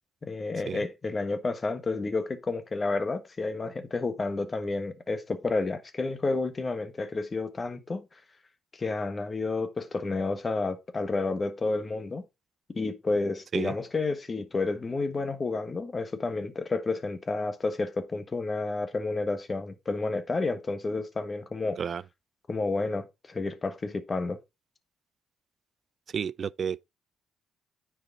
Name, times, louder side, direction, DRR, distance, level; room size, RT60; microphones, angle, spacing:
voice 1, 0.2-8.2 8.7-12.2 12.7-21.8 22.5-24.4, left 3 dB, 30° left, 1.3 m, -30 dB
voice 2, 26.1-26.8, right 7 dB, 50° right, 0.3 m, -31 dB
9.4 x 4.8 x 3.9 m
cardioid pair, 90°, 0 cm